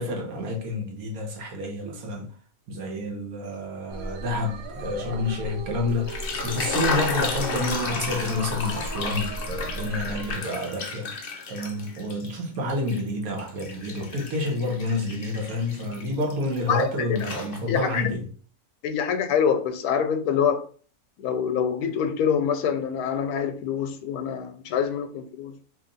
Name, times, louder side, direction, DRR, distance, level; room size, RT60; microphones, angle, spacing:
voice 1, 0.0-2.3 2.7-11.1 11.5-18.3, left 2 dB, 70° right, 1.3 m, -29 dB
sound 1, 3.9-10.4, right 2 dB, 90° right, 1.2 m, -36 dB
sound 2, 5.9-12.3 12.7-16.8 17.2-18.0, left 4 dB, 60° left, 0.6 m, -33 dB
voice 2, 16.7-17.2 17.7-18.0 18.8-20.6 21.2-25.6, left 7 dB, 80° left, 1.1 m, -25 dB
2.9 x 2.8 x 3.9 m
omnidirectional pair, 1.6 m